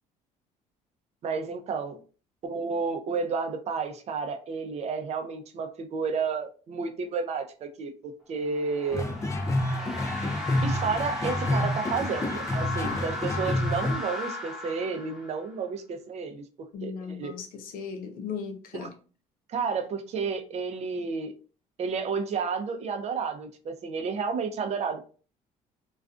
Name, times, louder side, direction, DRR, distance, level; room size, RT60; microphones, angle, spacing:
voice 1, 1.2-2.0 2.4-9.1 10.6-16.4 16.8-17.3 18.7-18.9 19.5-21.3 21.8-25.1, right 5 dB, 50° right, 0.5 m, -31 dB
sound 1, 8.4-15.5, left 2 dB, 5° right, 0.9 m, -36 dB
sound 2, 8.9-13.9, left 1 dB, 20° left, 0.4 m, -29 dB
voice 2, 16.7-18.9, left 6 dB, 75° left, 0.6 m, -37 dB
2.3 x 2.3 x 2.4 m
cardioid pair, 90°, 15 cm